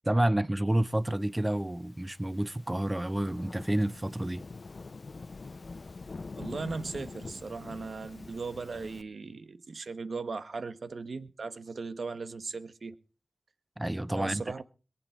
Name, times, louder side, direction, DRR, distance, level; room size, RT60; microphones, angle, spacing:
voice 1, 0.0-4.4 13.8-14.4, right 1 dB, 20° right, 0.9 m, -29 dB
Thunderstorm / Rain, 1.3-9.0, left 3 dB, 60° left, 0.6 m, -45 dB
voice 2, 6.4-12.9 14.2-14.6, right 4 dB, 75° right, 1.4 m, -38 dB
22.5 x 9.2 x 4.6 m
cardioid pair, 55°, 0 cm